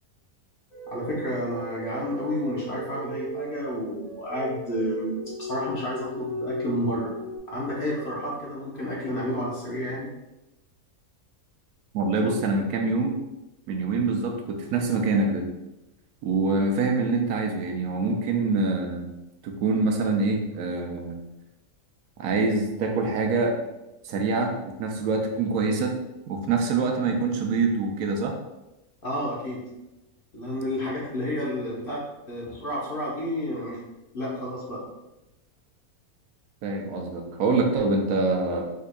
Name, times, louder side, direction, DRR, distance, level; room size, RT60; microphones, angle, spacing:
sound 1, 0.7-7.4, right 1 dB, 70° left, 1.9 m, -36 dB
voice 1, 0.9-5.1 5.4-7.1 7.5-10.1 29.0-29.6 30.3-33.8 34.1-34.8, left 1 dB, 45° left, -5 dB, 0.9 m, -30 dB
voice 2, 11.9-13.2 13.7-15.4 16.2-19.1 19.4-21.2 22.2-23.6 24.0-26.0 26.3-28.3 36.6-38.6, right 3 dB, 85° right, 3 dB, 1.1 m, -25 dB
3.7 x 3.3 x 2.2 m, 0.97 s
omnidirectional pair, 1.5 m